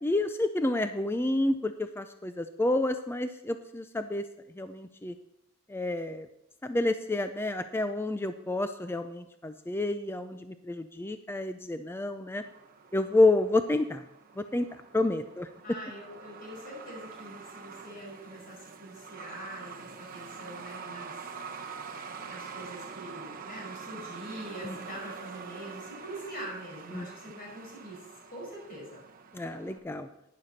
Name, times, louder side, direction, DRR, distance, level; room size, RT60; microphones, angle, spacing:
voice 1, 0.0-4.2 4.6-5.1 5.7-6.3 6.6-12.4 12.9-14.0 14.4-14.7 14.9-15.5 24.7-24.8 26.9-27.1 29.3-30.1, left 2 dB, 10° left, 9 dB, 0.4 m, -29 dB
Truck, 12.4-29.8, right 5 dB, 45° right, 1.1 m, -45 dB
voice 2, 15.6-21.3 22.2-29.0, right 1 dB, 45° left, -2 dB, 5.3 m, -44 dB
12.0 x 10.5 x 4.2 m, 0.80 s
head